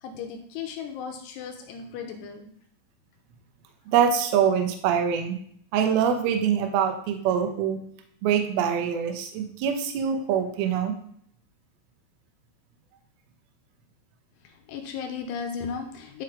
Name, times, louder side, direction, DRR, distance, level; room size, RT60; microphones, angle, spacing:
voice 1, 0.0-2.5 14.4-16.2, left 6 dB, 80° left, 4 dB, 2.6 m, -36 dB
voice 2, 3.9-5.4 5.7-7.8 8.2-11.0, right 8 dB, 75° right, 5 dB, 2.3 m, -24 dB
10.5 x 3.9 x 4.9 m, 0.66 s
omnidirectional pair, 5.5 m